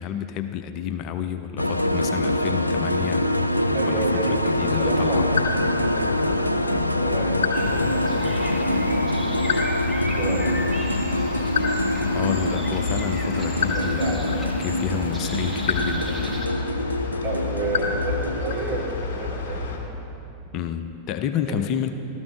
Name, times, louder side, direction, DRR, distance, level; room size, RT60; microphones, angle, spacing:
voice 1, 0.0-3.2 3.9-5.3 12.1-16.5 20.5-21.9, left 9 dB, 40° left, 8 dB, 0.6 m, -30 dB
sound 1, 1.6-18.9, left 1 dB, 85° left, 0.4 m, -25 dB
voice 2, 3.7-4.4 4.7-5.2 5.8-8.8 10.2-10.7 13.6-14.7 14.9-15.0 17.2-19.7 21.5-21.6, right 4 dB, 45° right, -3 dB, 2.7 m, -32 dB
sound 2, 4.3-19.8, left 4 dB, 55° left, 1.9 m, -30 dB
sound 3, 7.5-16.5, equal, ahead, 2.1 m, -37 dB
14.0 x 13.5 x 3.9 m, 2.8 s
figure-of-eight pair, 90°, 0 cm